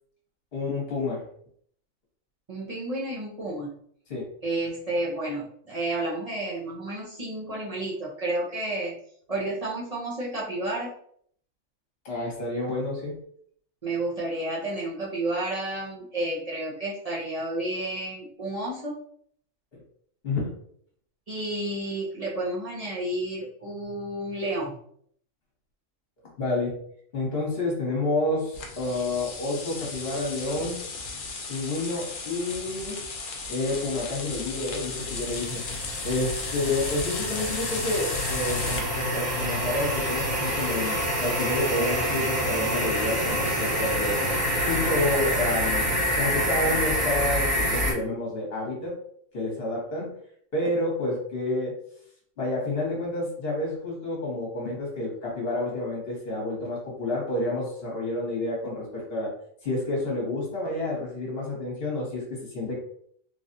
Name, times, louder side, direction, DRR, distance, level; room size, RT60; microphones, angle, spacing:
voice 1, 0.5-1.2 4.1-4.3 12.0-13.2 19.7-19.8 20.2-20.5 26.4-26.7 27.1-30.8 31.5-33.0 33.5-35.6 36.0-44.2 44.6-45.9 46.1-49.0 49.3-50.2 50.5-51.7 52.4-59.3 59.6-62.8, left 2 dB, 45° left, -2 dB, 1.3 m, -29 dB
voice 2, 2.5-3.7 4.4-9.0 9.3-10.9 13.8-18.9 21.3-24.8, right 1 dB, 45° right, -6 dB, 0.5 m, -31 dB
sound 1, 28.5-38.8, left 4 dB, 65° left, 0.5 m, -35 dB
sound 2, 34.1-47.9, equal, 30° right, 0.9 m, -27 dB
3.2 x 2.3 x 2.6 m, 0.63 s
omnidirectional pair, 1.4 m